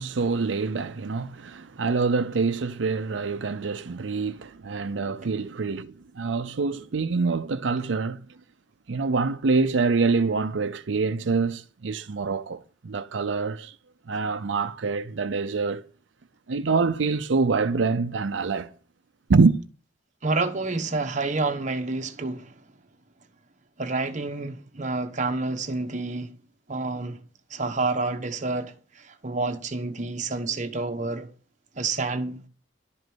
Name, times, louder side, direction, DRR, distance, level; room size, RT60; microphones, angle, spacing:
voice 1, 0.0-8.3 8.9-13.7 14.1-15.8 16.5-18.7 19.3-19.6, right 4 dB, 90° right, 0.6 m, -25 dB
voice 2, 20.2-22.5 23.8-26.3 26.7-27.2 27.5-31.3 31.8-32.5, right 3 dB, 45° right, 1.1 m, -29 dB
11.5 x 5.2 x 7.8 m
head